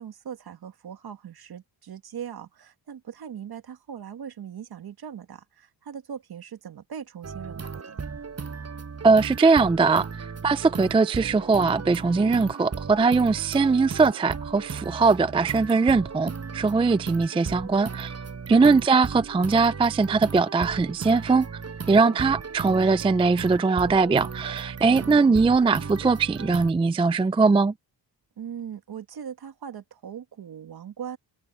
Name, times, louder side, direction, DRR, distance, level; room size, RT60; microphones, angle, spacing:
voice 1, 0.0-8.0 18.5-18.8 22.1-22.4 24.9-25.4 28.4-31.2, right 8 dB, 60° right, 2.0 m, -40 dB
sound 1, 7.2-26.7, right 5 dB, 35° right, 7.3 m, -36 dB
voice 2, 9.0-18.1 18.5-21.5 21.9-27.7, right 4 dB, 15° right, 0.3 m, -21 dB
wide cardioid pair, 145°, 43 cm